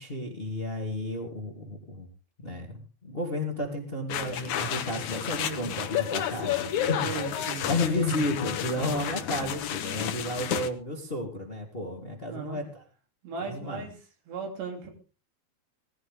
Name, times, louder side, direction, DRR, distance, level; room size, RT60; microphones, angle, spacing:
voice 1, 0.0-2.1 2.4-7.0 7.7-12.8 13.4-13.9, left 1 dB, 20° left, 1 dB, 1.9 m, -32 dB
sound 1, 4.1-10.7, left 10 dB, 70° left, 1.9 m, -31 dB
voice 2, 5.3-5.8 7.0-7.9 8.8-8.9 12.3-12.6 13.2-13.9 14.3-14.9, right 5 dB, 90° right, 2 dB, 5.4 m, -37 dB
19.0 x 14.0 x 3.7 m, 0.36 s
omnidirectional pair, 4.8 m